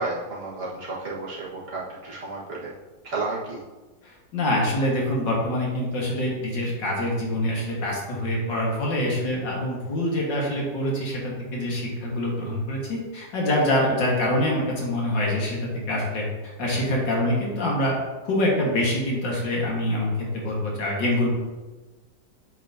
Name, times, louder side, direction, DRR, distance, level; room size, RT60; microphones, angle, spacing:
voice 1, 0.0-2.7 3.0-3.6, right 3 dB, 35° right, -6 dB, 1.6 m, -32 dB
voice 2, 4.0-17.9 18.2-21.3, left 1 dB, 85° left, -3 dB, 2.2 m, -25 dB
8.2 x 5.9 x 2.7 m, 1.2 s
omnidirectional pair, 1.9 m